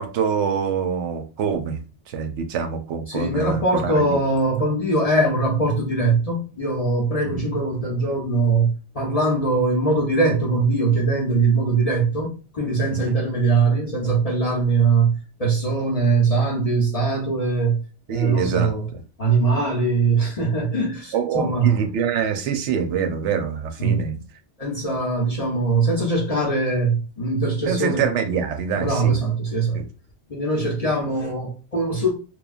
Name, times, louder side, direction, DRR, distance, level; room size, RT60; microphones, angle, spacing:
voice 1, 0.0-1.8 2.1-4.2 7.2-7.4 13.0-13.1 18.1-19.0 21.1-24.2 27.7-29.1 29.7-29.8, right 6 dB, 75° right, 0.8 m, -25 dB
voice 2, 3.1-15.1 15.4-17.8 18.1-18.9 19.2-21.7 23.8-24.0 24.6-28.1 28.8-29.8 30.3-32.1, right 3 dB, 40° left, 0.6 m, -21 dB
3.1 x 2.1 x 2.3 m
omnidirectional pair, 1.2 m